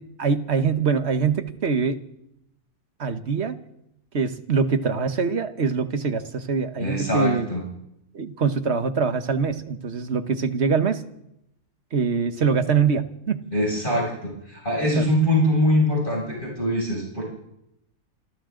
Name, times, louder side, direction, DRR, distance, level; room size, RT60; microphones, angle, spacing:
voice 1, 0.0-2.0 3.0-3.5 4.1-7.5 8.1-11.0 11.9-13.4 15.0-15.1, right 5 dB, 50° right, 9 dB, 1.5 m, -24 dB
voice 2, 6.8-7.6 13.5-17.2, equal, 35° left, -4 dB, 7.1 m, -23 dB
27.5 x 25.0 x 3.9 m, 0.83 s
omnidirectional pair, 1.5 m